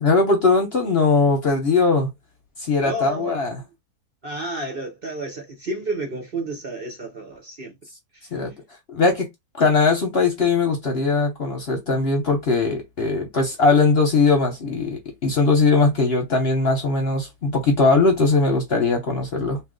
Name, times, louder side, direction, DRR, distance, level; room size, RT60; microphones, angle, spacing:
voice 1, 0.0-2.1 2.6-3.5 8.3-8.5 8.9-9.3 9.6-19.6, left 3 dB, 50° left, 0.9 m, -20 dB
voice 2, 2.8-3.7 4.2-7.7 8.1-8.4, right 2 dB, 45° right, 0.9 m, -31 dB
2.8 x 2.5 x 3.7 m
omnidirectional pair, 1.7 m